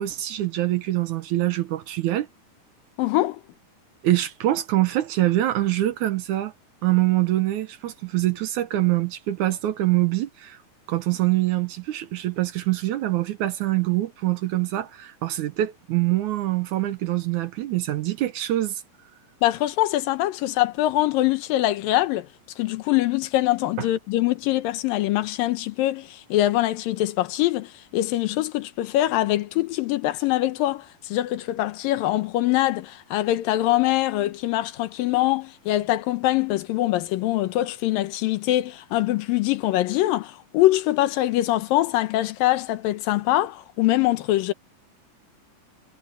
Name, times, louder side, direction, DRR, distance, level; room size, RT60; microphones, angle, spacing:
voice 1, 0.0-2.3 4.0-6.5 6.8-10.6 10.9-18.8 23.8-23.9, right 15 dB, 70° right, 2.1 m, -24 dB
voice 2, 3.0-3.4 19.4-22.3 22.6-44.5, left 15 dB, 80° left, 2.6 m, -23 dB
omnidirectional pair, 4.0 m